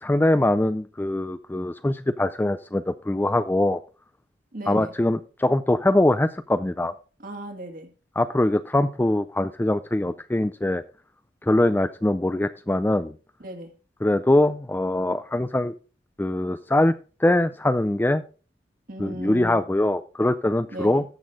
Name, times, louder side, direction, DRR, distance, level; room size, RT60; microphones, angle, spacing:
voice 1, 0.0-3.8 4.7-6.9 8.2-10.8 11.4-13.1 14.0-15.7 16.2-16.9 17.2-18.2 19.0-21.0, left 1 dB, 10° left, 12 dB, 0.4 m, -22 dB
voice 2, 4.5-4.9 7.2-7.9 13.4-13.7 18.9-19.6 20.7-21.1, right 1 dB, 50° right, 5 dB, 2.0 m, -36 dB
13.5 x 6.3 x 3.7 m, 0.35 s
head